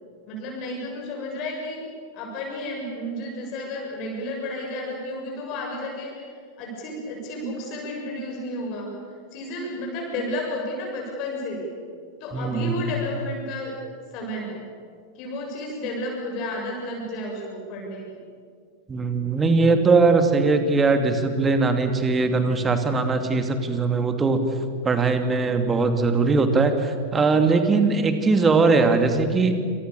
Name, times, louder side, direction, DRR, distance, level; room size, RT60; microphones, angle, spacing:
voice 1, 0.3-1.9 2.1-6.2 6.6-8.9 9.3-11.6 12.2-13.8 14.1-14.6 15.1-18.1, left 1 dB, 40° left, 0 dB, 7.3 m, -32 dB
voice 2, 12.3-12.8 18.9-24.4 24.8-29.5, right 4 dB, 15° right, 6 dB, 2.7 m, -20 dB
28.0 x 27.5 x 7.0 m, 2.1 s
figure-of-eight pair, 90°, 0 cm